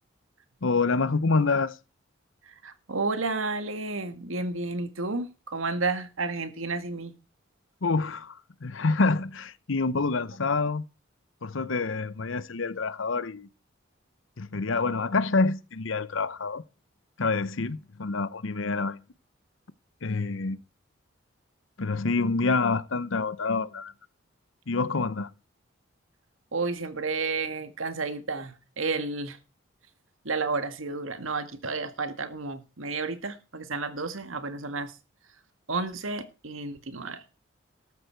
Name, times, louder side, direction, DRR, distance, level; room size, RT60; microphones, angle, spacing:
voice 1, 0.6-1.8 7.8-10.8 11.4-13.5 14.4-16.6 17.2-19.0 20.0-20.6 21.8-23.9 24.7-25.3, left 3 dB, 70° left, 0.8 m, -27 dB
voice 2, 2.5-7.1 26.5-29.4 30.2-34.9 35.7-37.2, right 3 dB, 85° right, 1.8 m, -31 dB
14.0 x 12.5 x 4.6 m
head